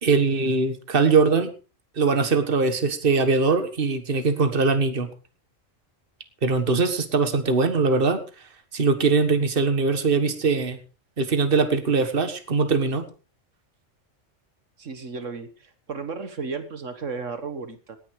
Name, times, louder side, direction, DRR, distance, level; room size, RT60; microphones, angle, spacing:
voice 1, 0.0-1.5 2.0-5.1 6.4-8.2 8.7-10.8 11.2-13.0, right 4 dB, 45° right, 9 dB, 1.8 m, -21 dB
voice 2, 14.8-18.0, right 4 dB, 75° right, 10 dB, 1.8 m, -34 dB
18.5 x 10.0 x 4.8 m, 0.35 s
omnidirectional pair, 1.3 m